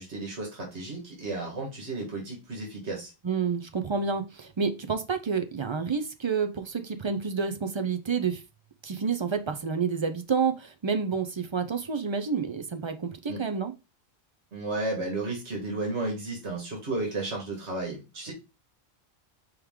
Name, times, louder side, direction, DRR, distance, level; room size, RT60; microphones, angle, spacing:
voice 1, 0.0-3.1 13.3-13.4 14.5-18.3, right 2 dB, 85° right, 1.8 m, -33 dB
voice 2, 3.2-8.4 8.8-13.7, right 5 dB, 45° right, 0.4 m, -29 dB
4.7 x 3.2 x 3.6 m
omnidirectional pair, 1.1 m